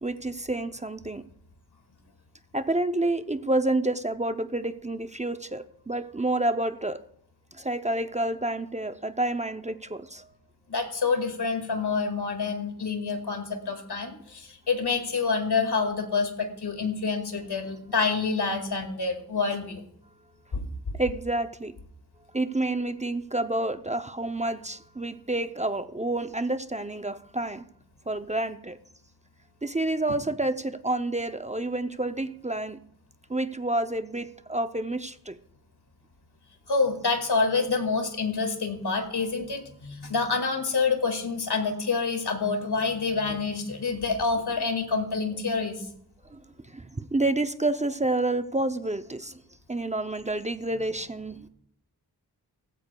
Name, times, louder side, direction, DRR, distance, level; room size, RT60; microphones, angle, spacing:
voice 1, 0.0-1.3 2.5-7.0 7.5-10.3 20.9-21.8 22.3-27.6 28.1-28.8 29.6-32.8 33.3-35.4 46.3-49.4 49.7-51.5, right 2 dB, 20° right, 0.5 m, -29 dB
voice 2, 10.7-19.8 20.5-20.7 36.7-45.9, left 4 dB, 85° left, 2.0 m, -27 dB
17.5 x 15.0 x 2.3 m
wide cardioid pair, 85°, 39 cm